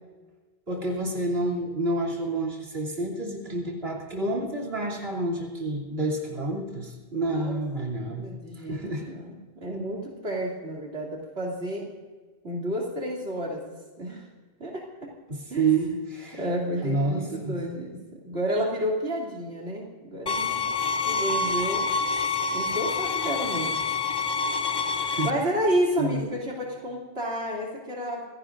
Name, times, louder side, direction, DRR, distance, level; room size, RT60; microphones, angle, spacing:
voice 1, 0.7-8.3 8.6-9.1 15.3-16.4 16.8-17.6 25.1-25.3 26.0-26.2, right 2 dB, 70° right, 0 dB, 3.3 m, -29 dB
voice 2, 8.0-8.8 9.1-11.9 12.4-14.3 14.6-15.1 15.5-15.7 16.3-20.7 21.0-21.9 22.5-23.9 25.2-28.3, equal, 85° right, -3 dB, 3.0 m, -30 dB
sound 1, 20.3-25.3, left 4 dB, 30° left, 0.6 m, -27 dB
27.5 x 16.5 x 2.6 m, 1.3 s
omnidirectional pair, 1.1 m